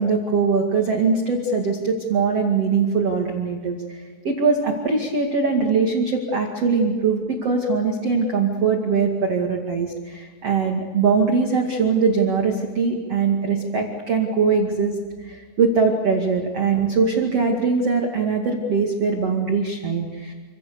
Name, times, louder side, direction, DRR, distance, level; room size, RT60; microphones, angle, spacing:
voice 1, 0.0-20.3, right 5 dB, 45° right, 1 dB, 2.4 m, -22 dB
28.0 x 26.0 x 7.0 m, 1.4 s
omnidirectional pair, 5.5 m